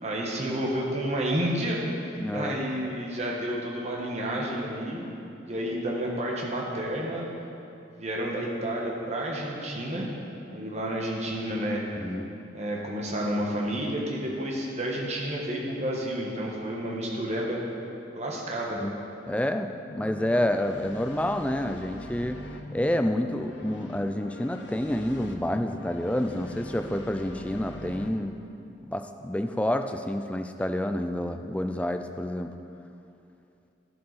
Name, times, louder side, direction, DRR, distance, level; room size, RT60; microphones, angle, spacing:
voice 1, 0.0-1.8 2.3-5.1 5.4-7.3 7.9-10.2 10.5-11.8 12.5-17.6 18.1-18.8, right 1 dB, 35° right, -3 dB, 1.4 m, -30 dB
voice 2, 2.2-2.6 12.0-12.4 18.8-18.9 19.3-22.4 22.7-28.4 28.7-32.5, left 1 dB, 5° left, 7 dB, 0.3 m, -29 dB
sound 1, 19.9-28.1, left 1 dB, 70° left, 0.7 m, -43 dB
11.5 x 7.6 x 4.1 m, 2.8 s
head